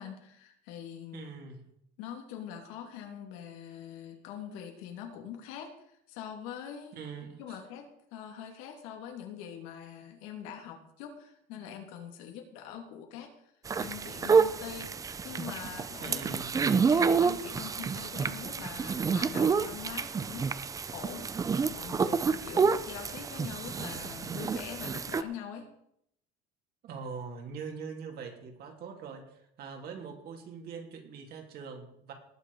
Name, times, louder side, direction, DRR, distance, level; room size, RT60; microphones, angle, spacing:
voice 1, 0.0-1.3 2.0-5.7 6.1-7.0 7.4-7.9 8.1-13.3 13.8-15.0 15.2-16.2 16.5-20.5 20.9-21.4 21.7-25.7, left 8 dB, 80° left, 3 dB, 2.8 m, -43 dB
voice 2, 1.1-1.6 6.9-7.6 16.0-16.5 26.8-32.1, right 5 dB, 50° right, 3 dB, 3.0 m, -43 dB
sound 1, 13.6-25.2, right 5 dB, 15° right, 0.5 m, -29 dB
19.0 x 7.3 x 5.5 m, 0.74 s
cardioid pair, 150°, 21 cm